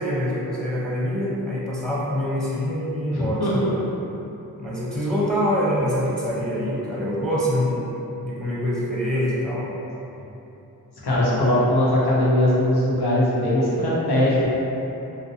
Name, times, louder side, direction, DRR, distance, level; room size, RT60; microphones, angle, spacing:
voice 1, 0.0-3.6 4.6-7.9 8.2-9.7 11.1-11.5, equal, ahead, -8 dB, 0.6 m, -25 dB
voice 2, 3.1-3.7 11.0-14.5, left 1 dB, 85° left, -7 dB, 0.7 m, -20 dB
2.6 x 2.1 x 2.7 m, 3.0 s
cardioid pair, 45°, 38 cm